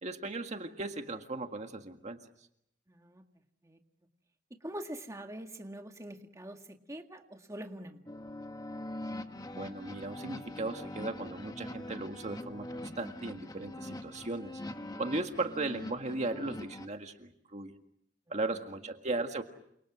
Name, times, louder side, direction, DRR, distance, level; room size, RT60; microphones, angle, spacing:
voice 1, 0.0-2.2 9.6-14.6 15.0-17.7 18.3-19.4, right 2 dB, 40° right, 5 dB, 1.8 m, -37 dB
voice 2, 2.9-3.2 3.6-3.8 4.6-8.1, right 1 dB, 15° right, 4 dB, 1.9 m, -44 dB
sound 1, 8.1-16.9, left 1 dB, 20° left, 1.5 m, -43 dB
29.5 x 27.5 x 6.3 m, 0.74 s
head